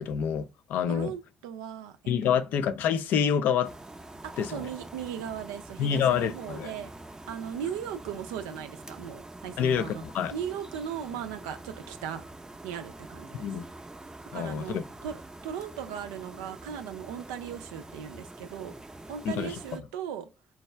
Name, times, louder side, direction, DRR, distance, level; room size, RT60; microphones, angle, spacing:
voice 1, 0.0-1.1 2.1-3.7 4.4-4.7 5.8-6.7 9.6-10.3 13.3-13.7 14.3-14.8 19.2-19.6, left 8 dB, 70° left, 0.4 m, -27 dB
voice 2, 0.9-2.4 4.2-6.9 7.3-10.0 10.3-12.2 12.6-13.5 14.3-18.7 19.1-20.3, right 8 dB, 85° right, 0.4 m, -38 dB
sound 1, 3.6-19.8, right 2 dB, 20° right, 0.5 m, -46 dB
4.5 x 2.3 x 3.1 m
hypercardioid pair, 40°, 3 cm